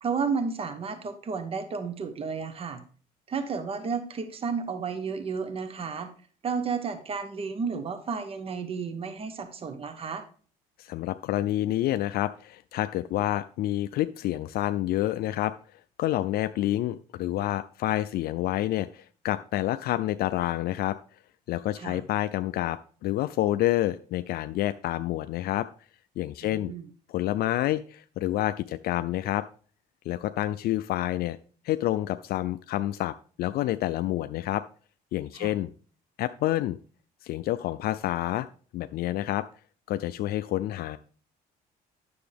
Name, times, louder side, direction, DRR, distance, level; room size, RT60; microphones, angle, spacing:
voice 1, 0.0-2.8 3.3-6.1 6.4-10.2 21.8-22.0 26.4-26.9 35.3-35.5, right 5 dB, 35° right, 10 dB, 1.0 m, -32 dB
voice 2, 10.8-15.5 16.0-21.0 21.5-25.7 26.2-26.7 27.1-29.4 30.1-31.4 31.6-34.6 35.1-35.7 36.2-36.8 37.2-38.5 38.7-39.4 39.9-41.0, left 14 dB, 65° left, 11 dB, 0.4 m, -28 dB
9.5 x 6.8 x 3.4 m, 0.42 s
cardioid pair, 110°, 17 cm